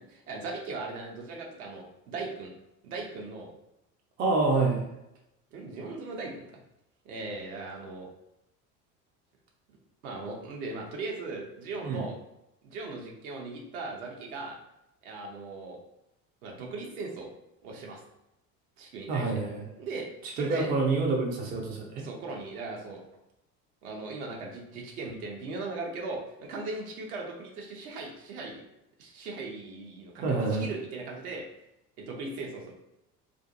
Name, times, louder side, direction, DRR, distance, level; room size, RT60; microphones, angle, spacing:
voice 1, 0.1-2.5 2.8-3.5 5.5-6.5 7.0-8.1 10.0-12.2 12.6-14.6 15.0-15.8 16.4-17.3 17.6-18.0 18.8-19.3 19.8-20.1 20.3-20.7 22.0-23.0 23.8-28.6 29.0-31.5 32.0-32.7, right 3 dB, 65° right, 0 dB, 0.8 m, -38 dB
voice 2, 4.2-4.8 11.8-12.0 19.1-19.6 20.4-22.0 30.2-30.7, right 3 dB, 20° right, 0 dB, 0.4 m, -27 dB
2.5 x 2.5 x 2.5 m, 0.87 s
figure-of-eight pair, 65°, 48 cm